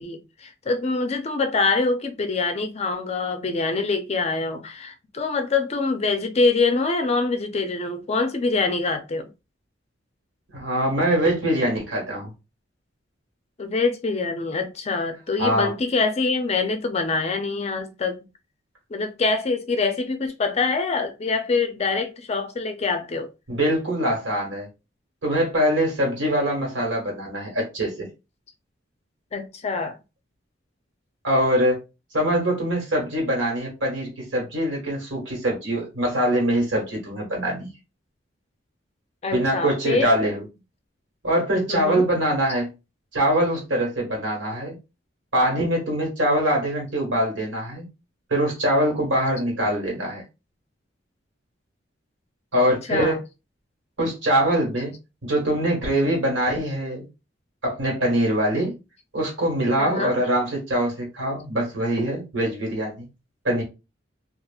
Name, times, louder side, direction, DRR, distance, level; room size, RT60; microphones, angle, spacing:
voice 1, 0.0-9.3 13.6-18.2 18.9-23.3 29.3-30.0 39.2-40.1 41.7-42.1 52.9-53.2 59.8-60.1, left 3 dB, 35° left, 0.4 m, -25 dB
voice 2, 10.5-12.3 15.4-15.7 23.5-24.7 25.2-28.1 31.2-31.8 32.1-37.7 39.3-40.4 41.2-42.7 43.1-44.8 45.3-47.9 48.3-50.2 52.5-53.2 54.0-54.9 55.2-57.1 57.6-58.7 59.1-63.1 63.4-63.6, right 1 dB, 85° right, 1.5 m, -23 dB
2.8 x 2.4 x 2.3 m
head